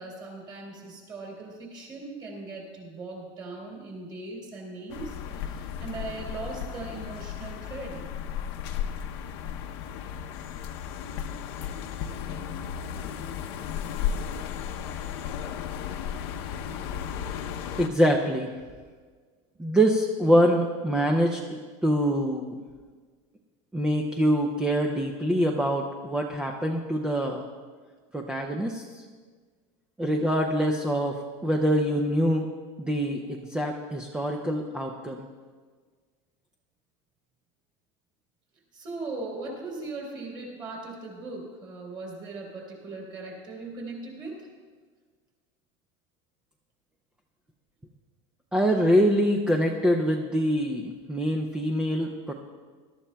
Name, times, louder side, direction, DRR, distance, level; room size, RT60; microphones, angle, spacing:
voice 1, 0.0-8.1 38.7-44.4, right 3 dB, 25° right, -2 dB, 3.3 m, -39 dB
sound 1, 4.9-17.9, left 8 dB, 55° left, 0.7 m, -34 dB
voice 2, 17.8-18.5 19.6-22.6 23.7-27.4 28.1-29.0 30.0-31.2 31.4-32.5 32.8-35.3 48.5-52.3, equal, 5° right, 1 dB, 0.4 m, -25 dB
21.0 x 12.5 x 2.2 m, 1.5 s
supercardioid pair, 175°, 16 cm